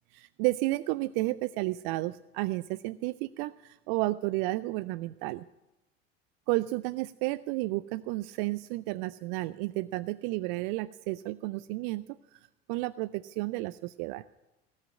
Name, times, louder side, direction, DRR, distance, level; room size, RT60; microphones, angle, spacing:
voice 1, 0.1-5.4 6.5-12.0 12.3-12.4 12.7-14.2, right 20 dB, 50° right, 18 dB, 0.4 m, -32 dB
18.0 x 6.5 x 9.5 m, 0.98 s
figure-of-eight pair, 75°, 32 cm